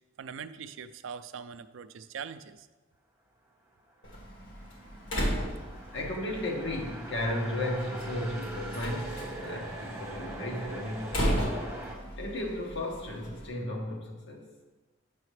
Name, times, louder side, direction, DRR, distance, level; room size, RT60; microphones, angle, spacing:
voice 1, 0.2-2.7, right 6 dB, 75° right, 12 dB, 0.4 m, -42 dB
Slam, 4.0-13.5, equal, 80° left, 1.8 m, -36 dB
sound 1, 4.0-11.9, right 2 dB, 15° right, 1.2 m, -43 dB
voice 2, 5.9-11.7 12.2-14.4, left 1 dB, 60° left, -1 dB, 1.3 m, -34 dB
8.3 x 5.7 x 3.2 m, 1.2 s
head